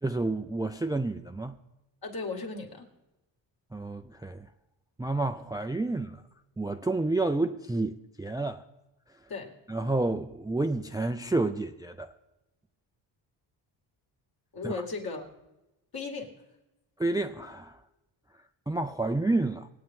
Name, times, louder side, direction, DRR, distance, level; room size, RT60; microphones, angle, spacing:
voice 1, 0.0-1.6 3.7-4.5 5.0-6.2 6.6-8.6 9.7-12.1 14.6-14.8 17.0-17.8 18.7-19.7, right 2 dB, 10° right, 0.4 m, -30 dB
voice 2, 2.0-2.9 9.3-9.5 14.5-15.3 15.9-16.3, left 4 dB, 50° left, 2.3 m, -36 dB
20.0 x 8.9 x 3.7 m
cardioid pair, 95°, 47 cm